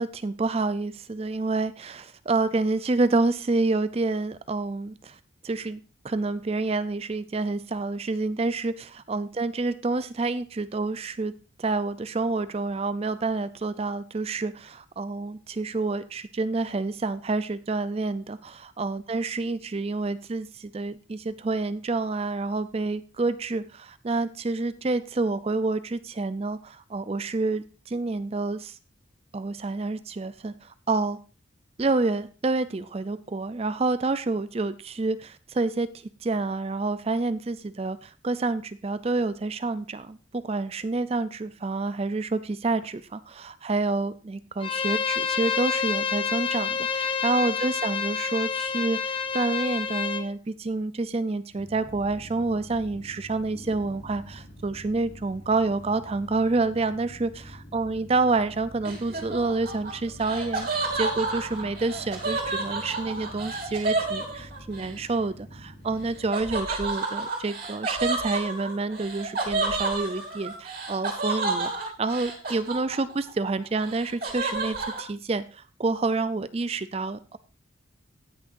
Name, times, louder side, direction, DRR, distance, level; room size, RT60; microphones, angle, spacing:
voice 1, 0.0-5.2 5.4-5.8 6.0-11.3 11.6-28.7 29.3-31.2 31.8-35.9 36.2-77.4, right 3 dB, 30° right, 14 dB, 0.4 m, -28 dB
Bowed string instrument, 44.6-50.2, left 6 dB, 25° left, 0.9 m, -28 dB
sound 1, 51.5-66.3, equal, 60° left, 4.1 m, -46 dB
Laughter, 58.8-64.9 66.3-73.3 73.6-75.0, right 3 dB, 50° right, 3.0 m, -30 dB
18.0 x 6.2 x 2.6 m, 0.34 s
head